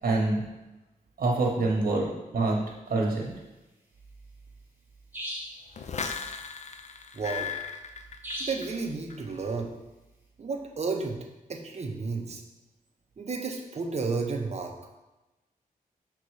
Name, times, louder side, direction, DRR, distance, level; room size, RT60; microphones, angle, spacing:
voice 1, 0.0-0.4 1.2-2.1 2.3-2.6 2.9-3.3, right 2 dB, 70° right, -1 dB, 1.4 m, -25 dB
sound 1, 5.1-5.6 8.2-8.7, equal, 10° right, 1.9 m, -36 dB
sound 2, 5.7-8.8 9.1-9.5, left 6 dB, 50° left, 0.5 m, -37 dB
voice 2, 7.1-7.5 8.4-9.8 10.4-12.4 13.2-14.7, right 4 dB, 45° right, 2 dB, 1.0 m, -32 dB
6.0 x 4.0 x 4.9 m, 1.0 s
cardioid pair, 90°, 15 cm